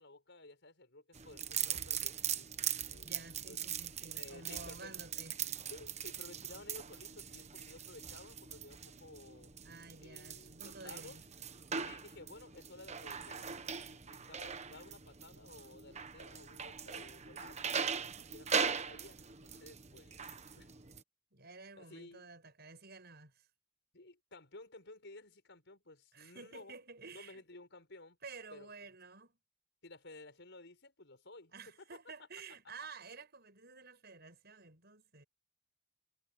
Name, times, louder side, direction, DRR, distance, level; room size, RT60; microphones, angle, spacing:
voice 1, 0.0-2.5 2.9-3.1 3.5-3.7 4.1-5.0 5.7-9.5 10.0-11.2 11.8-17.7 18.3-20.7 21.7-22.3 23.9-26.7 27.1-28.2 28.5-28.7 29.8-31.8, left 2 dB, 65° left, 6.8 m, -55 dB
sound 1, 1.1-21.0, right 7 dB, 35° right, 1.2 m, -41 dB
voice 2, 3.0-5.3 9.6-11.2 18.0-18.3 21.3-23.5 26.1-27.4 28.2-29.4 31.5-35.2, right 4 dB, 55° right, 7.3 m, -52 dB
head